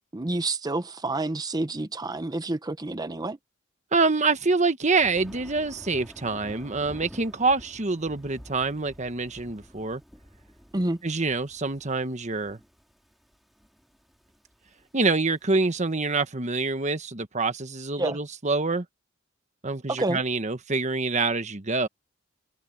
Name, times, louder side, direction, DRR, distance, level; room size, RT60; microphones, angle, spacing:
voice 1, 0.1-3.4 10.7-11.0 18.0-18.2 19.9-20.2, right 2 dB, 20° right, 0.7 m, -28 dB
voice 2, 3.9-10.0 11.0-12.6 14.9-18.8 19.6-21.9, right 3 dB, 35° right, 1.3 m, -26 dB
Thunder, 5.0-16.1, equal, ahead, 2.6 m, -49 dB
head